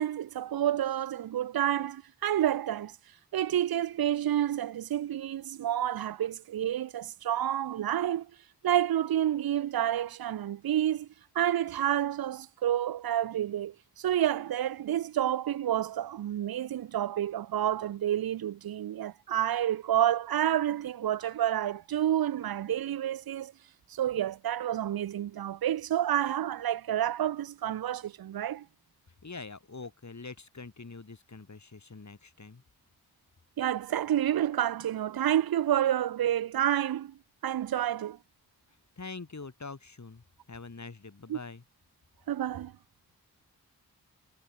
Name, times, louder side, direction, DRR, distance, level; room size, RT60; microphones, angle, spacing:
voice 1, 0.0-3.0 3.3-8.3 8.6-11.1 11.3-23.5 23.9-28.6 33.6-38.2 41.3-41.4 42.3-42.7, right 11 dB, 70° right, 0.6 m, -29 dB
voice 2, 29.2-32.6 39.0-41.6, left 4 dB, 45° left, 4.7 m, -44 dB
cardioid pair, 45°, 38 cm